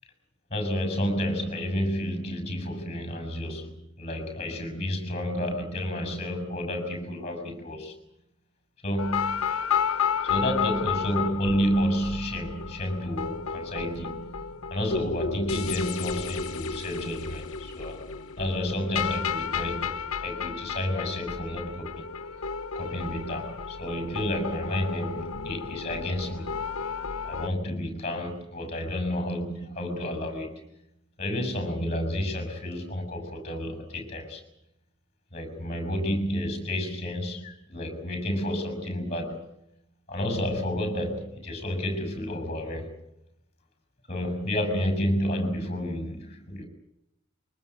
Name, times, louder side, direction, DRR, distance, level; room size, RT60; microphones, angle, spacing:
voice 1, 0.5-8.0 8.8-9.4 10.2-18.0 18.4-22.1 22.8-26.6 27.2-30.6 31.2-34.4 35.3-39.4 40.1-42.9 44.1-46.7, equal, 30° left, 7 dB, 6.7 m, -30 dB
sound 1, 9.0-27.5, left 6 dB, 85° left, 0.9 m, -32 dB
23.5 x 19.0 x 9.4 m, 0.83 s
head